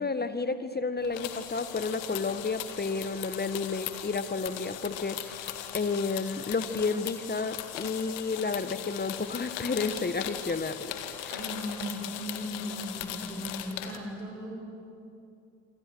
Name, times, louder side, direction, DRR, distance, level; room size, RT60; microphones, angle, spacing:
voice 1, 0.0-10.9 11.2-11.3, left 4 dB, 20° left, 11 dB, 1.5 m, -31 dB
sound 1, 1.0-14.0, left 11 dB, 65° left, 2.1 m, -39 dB
voice 2, 11.3-14.5, equal, 85° right, -1 dB, 6.3 m, -37 dB
27.5 x 25.5 x 6.4 m, 2.6 s
hypercardioid pair, 60°, 48 cm